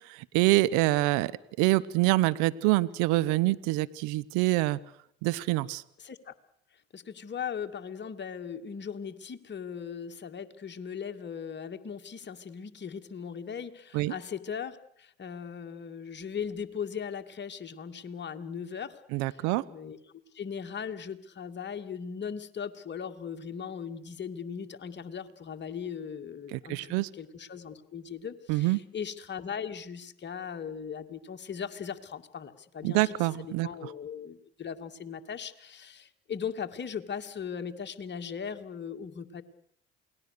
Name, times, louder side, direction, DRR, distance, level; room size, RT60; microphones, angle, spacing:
voice 1, 0.1-1.3 1.6-4.8 5.2-5.8 13.9-14.1 19.1-19.6 26.5-27.1 28.5-28.8 32.8-33.7, right 19 dB, 75° right, 17 dB, 0.9 m, -26 dB
voice 2, 6.0-6.3 6.7-19.0 19.3-20.0 20.3-39.4, left 7 dB, 35° left, 6 dB, 2.3 m, -39 dB
28.0 x 19.5 x 6.7 m, 0.69 s
hypercardioid pair, 65°, 30 cm